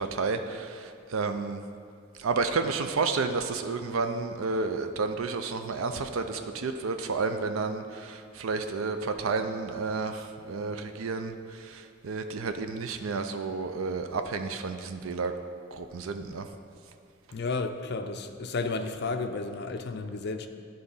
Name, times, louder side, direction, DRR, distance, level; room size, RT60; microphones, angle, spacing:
voice 1, 0.0-1.6 2.2-15.3 15.7-16.5, right 4 dB, 85° right, 7 dB, 0.5 m, -31 dB
voice 2, 17.3-20.5, left 3 dB, 55° left, 7 dB, 0.5 m, -32 dB
11.5 x 3.9 x 5.4 m, 2.4 s
head